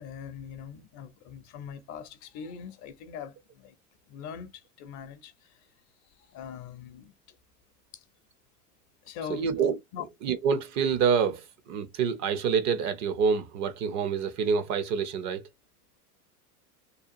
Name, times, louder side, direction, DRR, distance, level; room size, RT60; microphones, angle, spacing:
voice 1, 0.0-3.7 4.1-5.6 6.3-7.1 7.9-8.0 9.0-9.5 9.9-10.0, left 7 dB, 40° left, 0.5 m, -42 dB
voice 2, 9.3-9.8 10.2-15.4, right 6 dB, 40° right, 0.5 m, -27 dB
2.8 x 2.3 x 2.5 m
hypercardioid pair, 100°, 47 cm